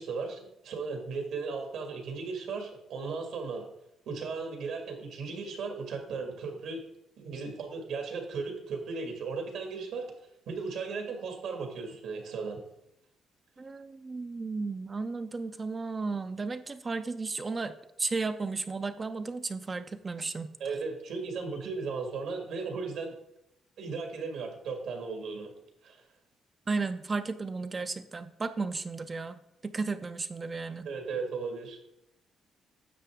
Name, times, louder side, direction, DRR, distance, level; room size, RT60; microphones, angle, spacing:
voice 1, 0.0-3.7 4.1-6.8 7.2-10.1 10.5-12.6 20.6-23.2 23.8-25.5 25.8-26.0 30.8-31.8, right 4 dB, 80° right, 3 dB, 2.1 m, -36 dB
voice 2, 13.6-20.5 26.7-30.9, right 4 dB, 25° right, 9 dB, 0.4 m, -34 dB
10.0 x 6.9 x 3.6 m, 0.82 s
cardioid pair, 125°, 0 cm